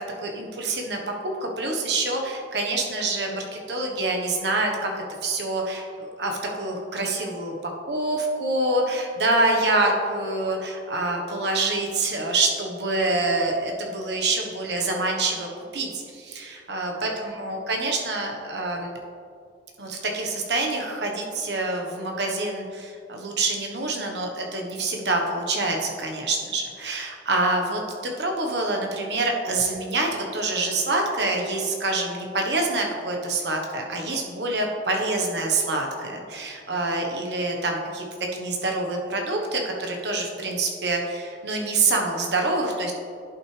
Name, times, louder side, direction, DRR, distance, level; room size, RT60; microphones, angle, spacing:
voice 1, 0.2-1.1 1.4-15.5 15.7-18.9 19.8-38.0 38.3-42.9, right 2 dB, 75° right, 1 dB, 1.1 m, -26 dB
10.5 x 5.7 x 3.3 m, 2.4 s
head